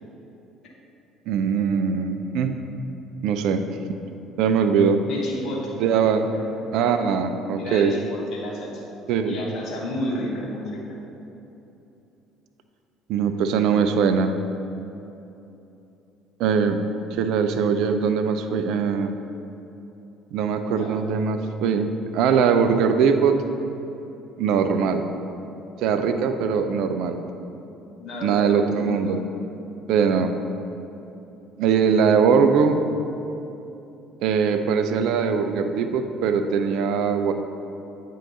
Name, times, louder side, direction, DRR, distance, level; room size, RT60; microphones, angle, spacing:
voice 1, 1.3-2.5 3.2-3.7 4.4-5.0 5.8-6.3 6.7-7.9 9.1-9.4 13.1-14.3 16.4-16.8 17.1-19.1 20.3-23.4 24.4-25.1 25.8-27.2 28.2-29.2 29.9-30.3 31.6-32.8 34.2-37.3, right 6 dB, 60° right, 8 dB, 0.4 m, -21 dB
voice 2, 5.0-5.8 6.3-6.5 7.5-8.8 9.2-10.8 20.7-21.0 28.0-29.1, left 1 dB, 55° left, -3 dB, 1.4 m, -31 dB
9.0 x 3.7 x 4.2 m, 2.9 s
figure-of-eight pair, 55°, 0 cm